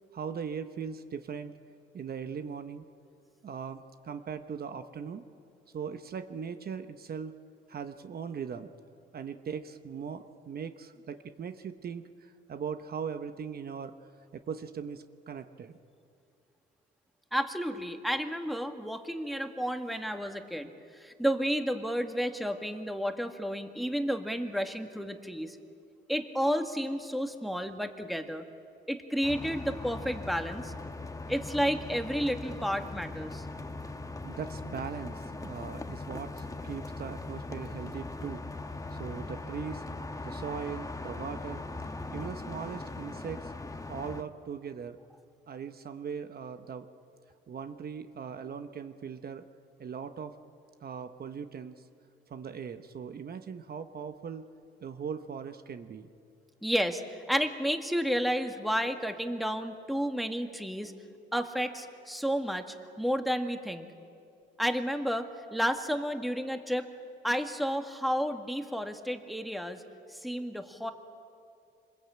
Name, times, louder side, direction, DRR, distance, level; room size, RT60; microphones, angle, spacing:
voice 1, 0.1-1.6 1.9-2.9 3.4-5.2 5.7-7.4 7.7-8.7 9.1-13.9 14.3-15.8 34.2-38.5 38.9-39.8 40.2-41.6 42.1-43.5 43.9-45.0 45.5-46.9 47.5-49.4 49.8-50.3 50.8-51.8 52.3-54.5 54.8-56.1, right 6 dB, 50° right, 9 dB, 1.1 m, -39 dB
voice 2, 17.3-25.6 26.1-28.4 28.9-30.7 31.3-33.5 56.6-60.9 61.3-63.9 64.6-66.9 67.2-69.8 70.1-70.9, equal, ahead, 6 dB, 1.9 m, -31 dB
sound 1, 29.2-44.2, left 2 dB, 15° left, 1.4 m, -40 dB
25.5 x 21.0 x 8.8 m, 2.5 s
cardioid pair, 90°, 20 cm